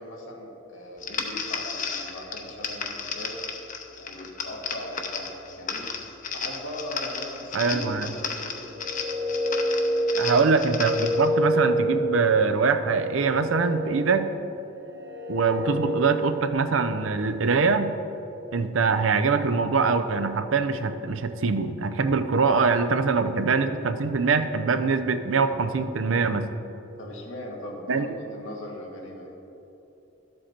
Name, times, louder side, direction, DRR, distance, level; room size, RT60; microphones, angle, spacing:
voice 1, 0.0-3.3 4.0-5.9 6.3-8.6 10.1-10.6 27.0-29.3, left 1 dB, 90° left, -1 dB, 1.9 m, -38 dB
sound 1, 1.0-11.3, left 5 dB, 40° left, 0.8 m, -34 dB
voice 2, 7.5-8.1 10.2-14.3 15.3-17.9 18.5-26.5 27.9-28.1, right 4 dB, 85° right, 9 dB, 0.6 m, -23 dB
sound 2, 8.6-16.5, equal, 60° right, 1.2 m, -28 dB
12.0 x 7.6 x 4.3 m, 3.0 s
head